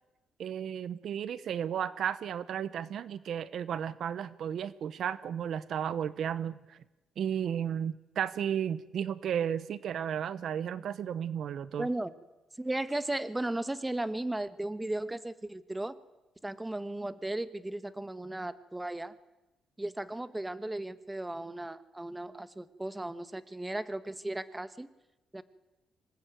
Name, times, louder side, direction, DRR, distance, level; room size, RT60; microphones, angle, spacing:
voice 1, 0.4-6.8 7.2-11.9, right 8 dB, 65° right, 16 dB, 0.9 m, -33 dB
voice 2, 11.8-12.1 12.6-15.9 16.4-19.1 19.8-24.9 25.3-25.4, right 1 dB, 10° right, 13 dB, 1.4 m, -36 dB
25.5 x 20.0 x 9.3 m, 1.0 s
cardioid pair, 90°, 0 cm